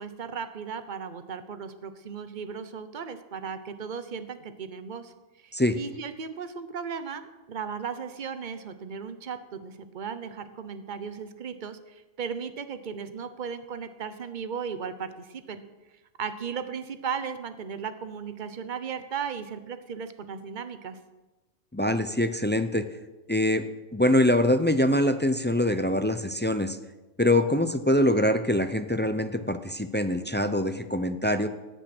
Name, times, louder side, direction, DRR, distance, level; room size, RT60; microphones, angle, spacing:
voice 1, 0.0-5.1 5.4-15.6 16.2-21.0, right 6 dB, 40° right, 10 dB, 1.0 m, -36 dB
voice 2, 21.7-22.9 23.3-23.7 23.9-26.8 27.2-31.5, left 1 dB, 15° left, 9 dB, 0.4 m, -24 dB
15.0 x 10.5 x 6.1 m, 1.1 s
omnidirectional pair, 1.3 m